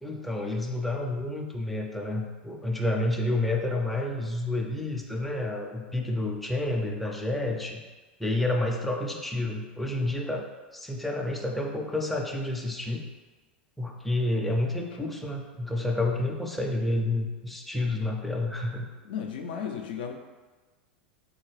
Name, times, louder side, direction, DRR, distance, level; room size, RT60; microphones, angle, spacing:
voice 1, 0.0-7.8 8.2-10.5 10.7-13.0 13.8-18.9, left 2 dB, ahead, 1 dB, 0.4 m, -29 dB
voice 2, 19.0-20.1, left 7 dB, 70° left, 3 dB, 0.4 m, -34 dB
3.7 x 2.3 x 3.2 m, 1.3 s
hypercardioid pair, 90°, 6 cm